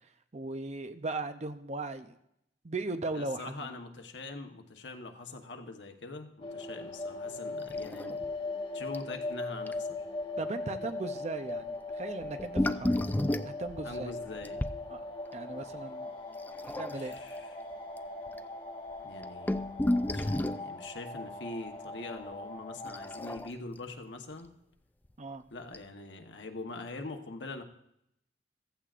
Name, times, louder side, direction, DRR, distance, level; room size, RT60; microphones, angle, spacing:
voice 1, 0.3-2.2 2.6-3.7 10.4-12.9 13.4-14.2 14.9-15.0 15.3-16.1 16.8-17.2 25.2-25.4, right 2 dB, 40° right, 9 dB, 0.6 m, -37 dB
voice 2, 3.1-8.3 8.7-10.0 13.8-14.6 16.9-17.6 19.0-19.7 20.1-24.5 25.5-27.6, left 3 dB, 90° left, 4 dB, 1.2 m, -43 dB
sound 1, 6.4-23.4, left 2 dB, 30° left, 1.5 m, -40 dB
sound 2, 7.7-8.3 8.5-8.6 8.9-9.1 9.7-9.8 12.2-14.8 16.5-17.2 18.0-18.1 18.3-18.4 19.0-20.7 22.9-23.8 25.0-25.1 25.7-25.8, left 1 dB, 10° left, 0.4 m, -32 dB
15.0 x 14.5 x 2.5 m, 0.79 s
head